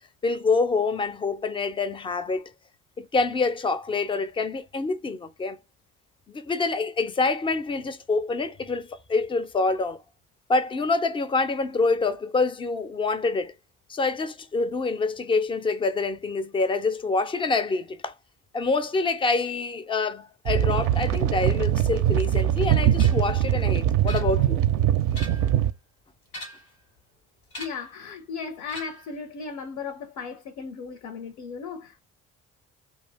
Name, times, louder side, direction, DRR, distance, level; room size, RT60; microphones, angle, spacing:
voice 1, 0.2-2.5 3.0-5.6 6.3-10.0 10.5-13.5 13.9-18.1 18.5-24.6, left 3 dB, 15° left, 0.3 m, -26 dB
sound 1, 20.5-25.7, right 11 dB, 50° right, 0.4 m, -22 dB
sound 2, 23.0-23.3 24.1-24.7 25.0-25.6 26.3-26.8 27.5-27.9 28.7-29.2, left 1 dB, 90° left, 1.2 m, -41 dB
voice 2, 27.6-32.1, left 5 dB, 65° left, 0.6 m, -36 dB
2.4 x 2.1 x 3.3 m
figure-of-eight pair, 50°, 41 cm